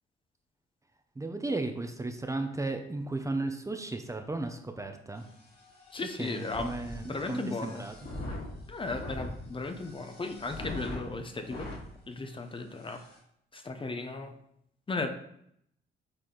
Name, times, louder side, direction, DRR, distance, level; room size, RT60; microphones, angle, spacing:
voice 1, 1.1-5.3 6.0-7.9, right 2 dB, 15° right, 6 dB, 0.7 m, -35 dB
sound 1, 5.2-11.8 12.4-12.5 12.7-13.2, left 1 dB, 55° left, 2.8 m, -43 dB
voice 2, 5.9-6.7 7.0-7.8 8.7-11.7 12.1-13.0 13.5-14.4 14.9-15.1, left 3 dB, 25° left, 7 dB, 0.8 m, -35 dB
7.9 x 4.2 x 3.9 m, 0.71 s
cardioid pair, 90°, 20 cm